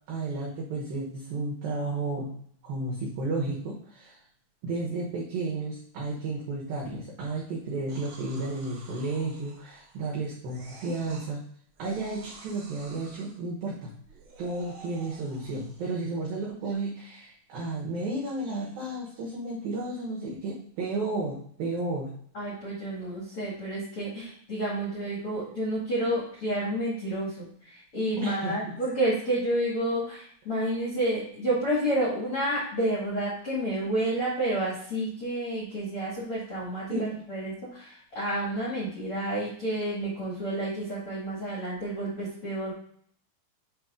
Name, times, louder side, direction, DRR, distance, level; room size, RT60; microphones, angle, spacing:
voice 1, 0.1-2.4 2.6-4.2 4.6-11.4 11.8-13.9 14.4-22.2 28.2-28.6 36.9-37.2, right 2 dB, 85° right, -3 dB, 2.0 m, -32 dB
sound 1, 7.9-10.1 10.4-11.3 11.7-13.4 14.0-16.0 16.6-16.7, right 3 dB, 50° right, 3.1 m, -50 dB
voice 2, 22.3-42.7, right 1 dB, 55° left, -6 dB, 1.5 m, -30 dB
7.9 x 3.2 x 5.0 m, 0.63 s
omnidirectional pair, 5.8 m